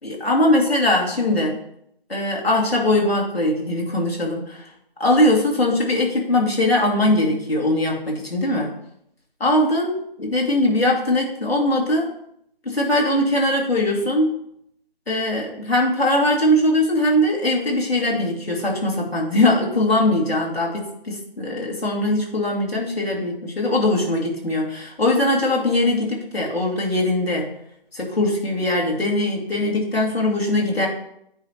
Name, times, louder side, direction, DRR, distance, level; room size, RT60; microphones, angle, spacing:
voice 1, 0.0-1.6 2.1-4.7 5.0-8.7 9.4-9.9 10.2-12.1 12.6-14.4 15.1-27.5 27.9-30.9, left 1 dB, 90° left, -2 dB, 2.4 m, -21 dB
8.9 x 5.0 x 2.9 m, 0.74 s
figure-of-eight pair, 160°, 30 cm